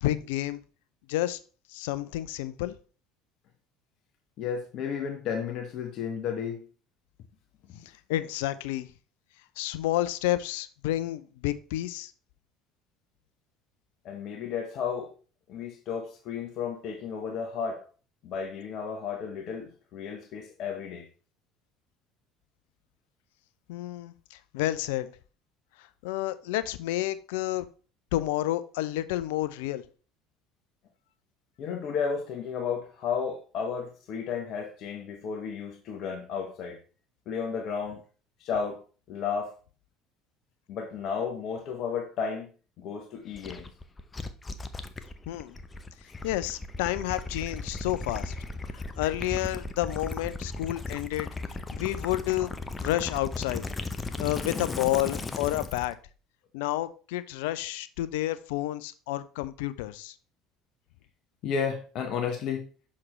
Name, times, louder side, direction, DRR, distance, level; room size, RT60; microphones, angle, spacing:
voice 1, 0.0-0.6 1.1-1.4 1.7-2.7 8.1-8.9 9.6-12.1 23.7-25.1 26.0-27.7 28.1-29.8 45.3-45.5 46.2-48.3 49.0-51.3 51.7-52.5 52.8-53.6 54.2-56.0 56.5-60.1, left 15 dB, 70° left, 0.4 m, -30 dB
voice 2, 4.4-6.6 7.7-7.8 14.0-15.1 15.5-17.9 18.2-21.1 31.6-36.8 37.3-38.0 38.4-38.8 39.1-39.6 40.7-42.5 42.8-43.7 54.1-54.2 61.4-62.7, left 6 dB, 55° left, 0.9 m, -33 dB
Gurgling / Liquid, 43.3-55.9, left 3 dB, 25° left, 0.7 m, -36 dB
6.2 x 5.8 x 3.1 m
figure-of-eight pair, 65°, 0 cm